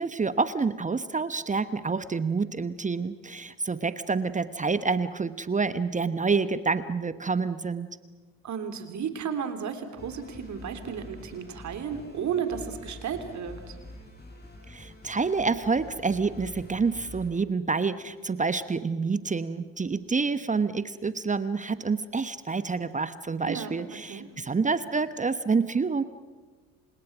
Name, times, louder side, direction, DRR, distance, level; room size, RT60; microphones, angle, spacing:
voice 1, 0.0-7.9 14.7-26.0, right 4 dB, 20° right, 14 dB, 1.0 m, -28 dB
voice 2, 8.4-13.8 23.4-23.7 24.1-24.3, right 7 dB, 45° right, 8 dB, 3.3 m, -33 dB
sound 1, 10.0-17.3, left 1 dB, 25° left, 7.4 m, -46 dB
29.5 x 26.0 x 6.1 m, 1.4 s
figure-of-eight pair, 55°, 40 cm